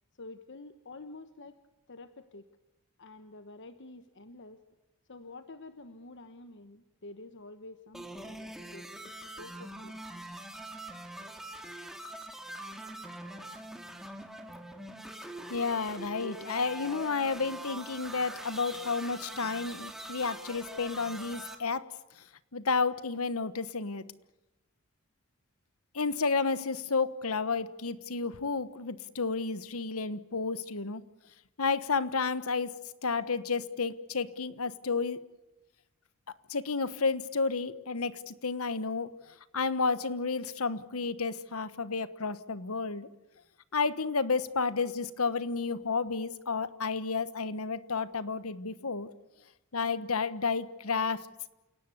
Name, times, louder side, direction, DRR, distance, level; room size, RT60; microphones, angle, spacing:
voice 1, 0.2-1.6 1.9-2.5 3.0-4.6 5.1-9.1 9.4-10.0, left 2 dB, 55° left, 9 dB, 1.2 m, -48 dB
sound 1, 7.9-21.6, right 1 dB, ahead, 2.6 m, -43 dB
voice 2, 15.5-21.9 22.5-24.0 25.9-31.0 31.6-32.7 33.0-35.2 36.5-43.1 43.7-49.1 49.7-51.3, left 4 dB, 75° left, 15 dB, 1.3 m, -31 dB
28.5 x 17.5 x 8.2 m, 1.0 s
head